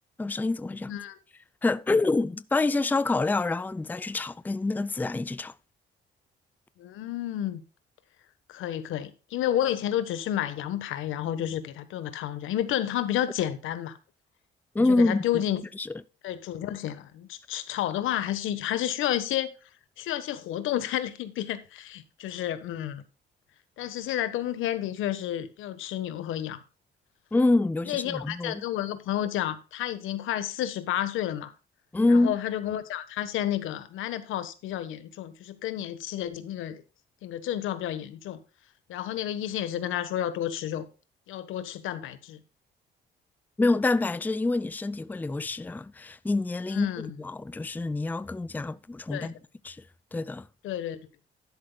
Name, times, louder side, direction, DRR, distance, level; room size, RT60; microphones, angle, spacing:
voice 1, 0.2-1.0 1.6-5.5 14.7-15.2 15.8-15.9 27.3-28.6 31.9-32.3 43.6-49.3 49.6-49.8 50.1-50.5, left 2 dB, 10° left, 0.5 m, -26 dB
voice 2, 6.8-7.6 8.5-14.0 14.8-15.6 16.2-19.5 20.0-23.0 23.8-26.6 27.9-31.5 32.1-36.8 37.2-38.4 38.9-40.9 41.3-42.4 46.7-47.2 49.1-49.3 50.6-51.0, left 11 dB, 85° left, 1.3 m, -31 dB
12.0 x 11.0 x 2.3 m
cardioid pair, 90°, 20 cm